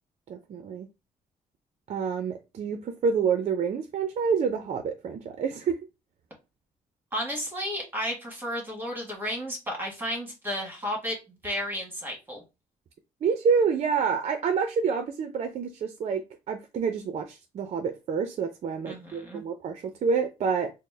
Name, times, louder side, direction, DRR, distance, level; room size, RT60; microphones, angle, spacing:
voice 1, 0.3-0.9 1.9-5.8 13.2-20.7, right 6 dB, 50° right, 0.5 m, -28 dB
voice 2, 7.1-12.4 18.8-19.4, equal, 15° right, 1.4 m, -33 dB
4.2 x 2.0 x 3.2 m
cardioid pair, 135°, 14 cm